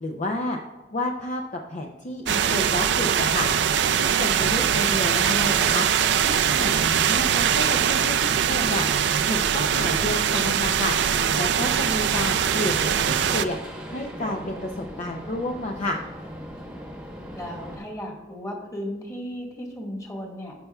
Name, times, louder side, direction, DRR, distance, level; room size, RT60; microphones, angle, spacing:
voice 1, 0.0-0.6 0.9-1.4 1.7-3.5 3.9-5.9 6.2-8.9 9.3-13.6 13.9-16.0, left 1 dB, 40° left, 2 dB, 0.6 m, -30 dB
sound 1, 2.3-13.4, right 8 dB, 75° right, 0.4 m, -22 dB
voice 2, 6.3-6.9 17.3-20.5, equal, 20° left, -1 dB, 1.7 m, -36 dB
sound 2, 12.0-17.8, equal, 5° right, 1.1 m, -39 dB
14.0 x 5.6 x 2.3 m, 1.3 s
head